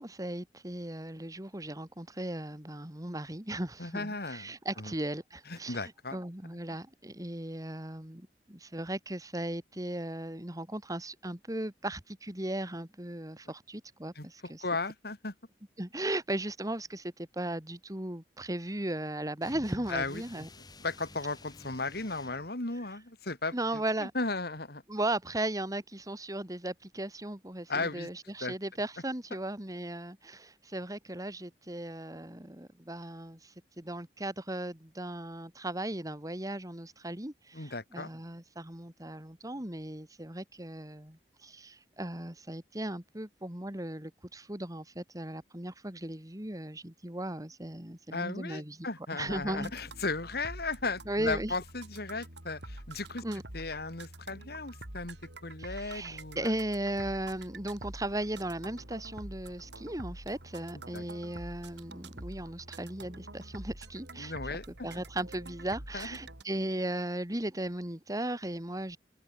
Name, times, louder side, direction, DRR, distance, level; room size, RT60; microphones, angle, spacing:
voice 1, 0.0-14.6 15.8-20.5 23.5-24.1 24.9-49.8 51.1-51.5 53.2-53.4 55.6-69.0, right 1 dB, 20° right, 2.6 m, -37 dB
voice 2, 3.8-4.9 5.5-6.2 14.2-14.3 14.6-15.3 19.9-20.4 20.8-24.8 27.7-28.1 28.4-28.5 37.5-38.1 48.1-53.2 53.5-55.2 55.4-56.5 60.9-61.0 64.2-64.9 65.9-66.1, left 3 dB, 60° left, 3.4 m, -36 dB
sound 1, 19.4-22.5, left 2 dB, 25° left, 2.6 m, -51 dB
sound 2, 49.3-66.4, right 1 dB, 85° right, 4.9 m, -47 dB
head